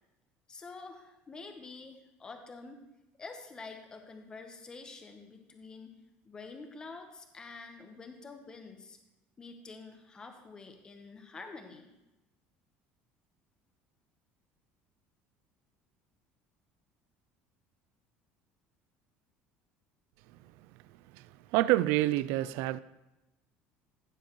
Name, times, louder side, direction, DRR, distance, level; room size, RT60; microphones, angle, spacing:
voice 1, 0.5-2.8 3.2-5.9 6.2-9.0 9.4-11.9, left 4 dB, 20° left, 1.0 m, -47 dB
voice 2, 21.5-22.8, right 16 dB, 75° right, 0.4 m, -27 dB
15.5 x 7.3 x 3.1 m
cardioid pair, 160°, 4 cm